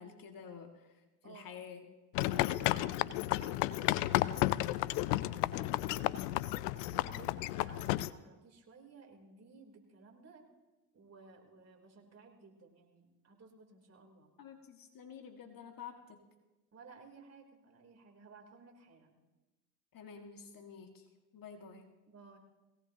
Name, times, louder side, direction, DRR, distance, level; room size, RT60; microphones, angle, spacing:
voice 1, 0.0-1.8 14.4-16.2 19.9-21.1 21.3-21.8, left 6 dB, 45° left, 4 dB, 2.1 m, -50 dB
sound 1, 2.1-8.1, left 17 dB, 80° left, 0.7 m, -32 dB
voice 2, 2.2-4.2 4.6-6.2 6.9-10.5 10.9-14.3 16.7-19.2 22.1-22.4, right 4 dB, 30° right, 1 dB, 3.7 m, -57 dB
21.0 x 17.5 x 3.0 m, 1.1 s
hypercardioid pair, 75°, 48 cm